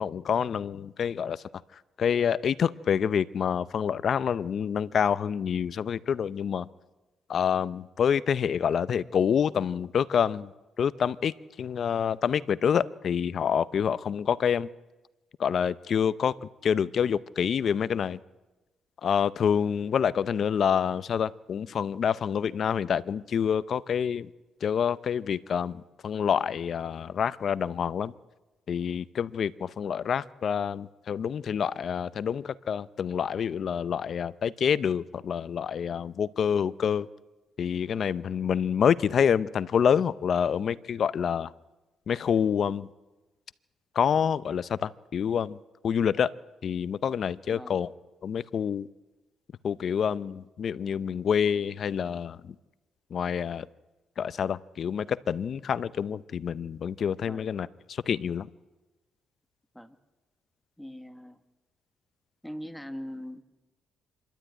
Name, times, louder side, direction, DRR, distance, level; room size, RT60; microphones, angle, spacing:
voice 1, 0.0-1.4 1.7-6.7 7.3-10.5 10.8-14.7 15.4-18.2 19.0-24.3 24.6-28.1 28.7-37.1 37.6-41.5 42.1-42.9 43.9-45.6 45.8-46.3 46.6-47.9 48.2-48.9 49.6-52.5 53.1-53.7 54.2-58.5, left 7 dB, 55° left, 18 dB, 0.6 m, -27 dB
voice 2, 47.5-47.8 57.3-57.7 59.7-60.0 60.8-61.4 62.4-63.4, equal, ahead, 9 dB, 1.4 m, -41 dB
26.0 x 12.0 x 9.1 m, 1.1 s
cardioid pair, 105°, 0 cm